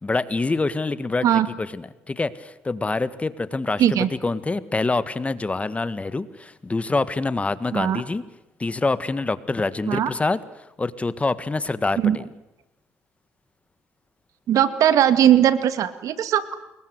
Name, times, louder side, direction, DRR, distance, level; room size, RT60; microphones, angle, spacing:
voice 1, 0.0-1.3 1.6-8.2 8.6-10.4 10.8-12.2, left 3 dB, 20° left, 15 dB, 1.6 m, -26 dB
voice 2, 14.5-16.6, right 10 dB, 65° right, 12 dB, 2.3 m, -19 dB
29.5 x 21.5 x 8.1 m, 0.92 s
supercardioid pair, 80°, 6 cm